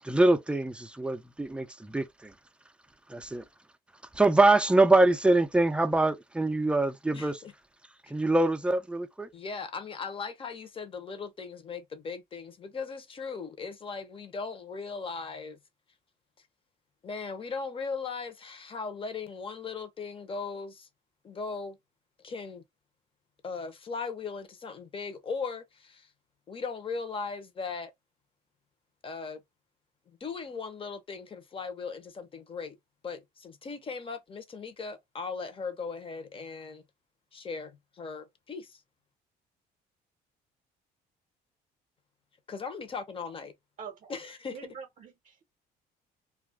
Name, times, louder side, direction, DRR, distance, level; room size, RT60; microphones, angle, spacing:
voice 1, 0.0-2.3 3.1-3.5 4.1-7.4 8.1-9.3, right 2 dB, 5° right, 0.4 m, -24 dB
voice 2, 7.1-7.5 9.3-15.6 17.0-20.9 21.2-21.8 22.2-22.6 23.4-26.1 26.5-27.9 29.0-29.4 30.1-32.8 33.0-36.8 37.3-38.8 42.5-43.5 44.1-44.6, left 4 dB, 30° left, 0.8 m, -38 dB
voice 3, 43.8-44.1 44.5-45.4, right 6 dB, 50° right, 0.7 m, -45 dB
2.4 x 2.2 x 3.4 m
cardioid pair, 110°, 17 cm